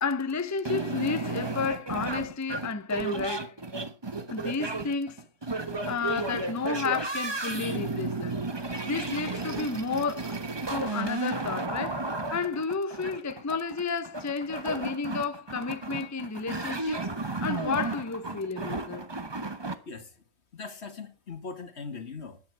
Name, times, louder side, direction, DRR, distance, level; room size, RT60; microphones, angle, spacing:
voice 1, 0.0-3.5 4.3-5.2 5.9-8.4 8.8-10.4 10.7-17.1 17.4-19.0, left 4 dB, 20° left, 0.7 m, -31 dB
sound 1, 0.6-19.7, right 3 dB, 25° right, 1.1 m, -33 dB
voice 2, 19.8-20.2 20.5-22.4, left 4 dB, 75° left, 1.9 m, -40 dB
14.0 x 10.5 x 4.6 m
omnidirectional pair, 1.1 m